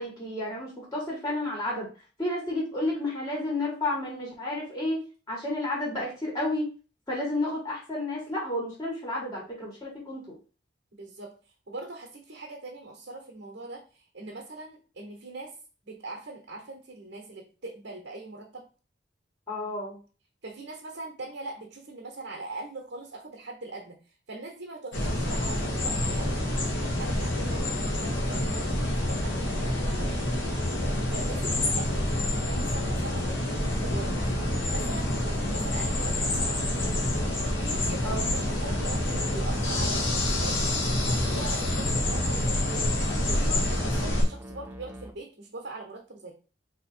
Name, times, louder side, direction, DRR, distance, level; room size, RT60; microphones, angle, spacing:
voice 1, 0.0-1.9 2.2-5.0 5.3-6.7 7.1-10.3 19.5-20.0 38.0-38.3, left 1 dB, 20° left, -3 dB, 1.6 m, -31 dB
voice 2, 11.0-11.4 11.7-15.6 15.8-18.7 20.4-26.4 26.8-30.3 31.1-34.4 34.7-37.2 37.5-43.0 43.3-46.3, right 2 dB, 65° right, 0 dB, 1.1 m, -42 dB
sound 1, 24.9-44.2, left 1 dB, 85° left, 1.3 m, -27 dB
sound 2, 33.5-45.1, right 1 dB, 10° right, 0.4 m, -43 dB
4.0 x 2.9 x 4.3 m, 0.35 s
head